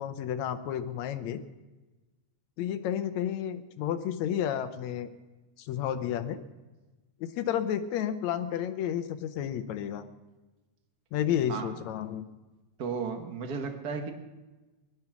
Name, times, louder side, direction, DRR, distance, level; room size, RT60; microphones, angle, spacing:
voice 1, 0.0-1.4 2.6-5.1 5.6-6.4 7.2-10.0 11.1-12.2, left 10 dB, 70° left, 10 dB, 1.9 m, -31 dB
voice 2, 12.8-14.1, right 5 dB, 70° right, 4 dB, 0.9 m, -34 dB
19.5 x 11.5 x 6.0 m, 1.2 s
omnidirectional pair, 3.7 m